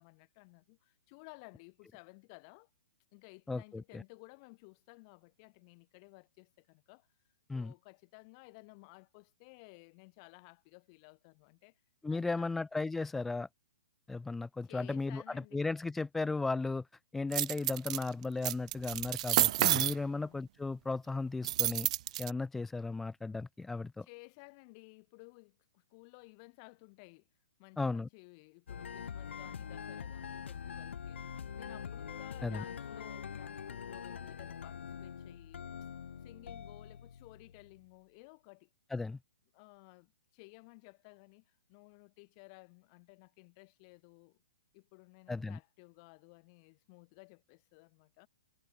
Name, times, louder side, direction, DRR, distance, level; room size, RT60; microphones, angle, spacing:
voice 1, 0.0-2.7 3.1-7.1 7.5-11.8 12.1-12.6 14.6-15.6 20.0-20.4 24.0-27.3 27.6-35.7 36.2-38.7 39.5-44.4 44.7-48.3, left 32 dB, 20° left, 5.3 m, -56 dB
voice 2, 12.0-13.5 14.1-16.8 17.1-21.9 22.2-24.1 27.8-28.1 32.4-32.6 38.9-39.2 45.3-45.6, left 3 dB, 5° left, 0.5 m, -35 dB
sound 1, 17.3-18.0 18.4-19.9 21.4-22.3, right 14 dB, 30° right, 1.0 m, -29 dB
sound 2, 28.7-37.8, left 7 dB, 70° left, 2.8 m, -44 dB
hypercardioid pair, 180°, 7 cm